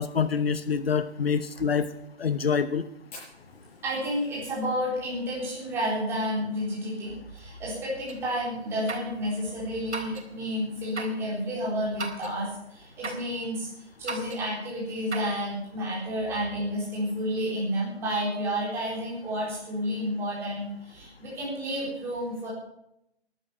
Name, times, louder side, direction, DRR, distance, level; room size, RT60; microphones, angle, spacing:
voice 1, 0.0-1.9 2.2-2.8, left 6 dB, 60° left, 13 dB, 0.9 m, -26 dB
Fire, 3.1-7.6 7.9-8.0 8.2-8.3 8.7-9.1 9.6-9.7 10.8-10.9, left 2 dB, 35° left, 6.9 m, -51 dB
voice 2, 3.8-13.7 14.0-22.5, equal, 5° right, -6 dB, 3.9 m, -31 dB
sound 1, 8.1-8.2 8.9-9.2 9.9-10.3 11.0-11.2 12.0-12.4 13.0-13.3 14.1-14.5 15.1-15.4, right 3 dB, 85° right, 4.1 m, -36 dB
13.5 x 12.0 x 7.2 m, 0.79 s
hypercardioid pair, 170°, 33 cm